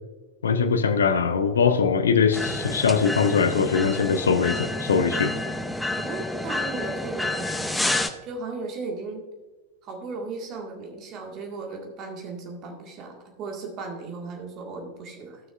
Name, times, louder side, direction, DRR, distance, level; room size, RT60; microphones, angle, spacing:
voice 1, 0.4-5.3, left 6 dB, 70° left, 11 dB, 0.7 m, -22 dB
sound 1, 2.3-8.1, left 2 dB, 5° left, 0.6 m, -29 dB
voice 2, 6.0-9.2 9.8-15.4, right 3 dB, 35° right, 1 dB, 1.8 m, -36 dB
15.5 x 6.2 x 2.5 m, 1.2 s
figure-of-eight pair, 90°, 0 cm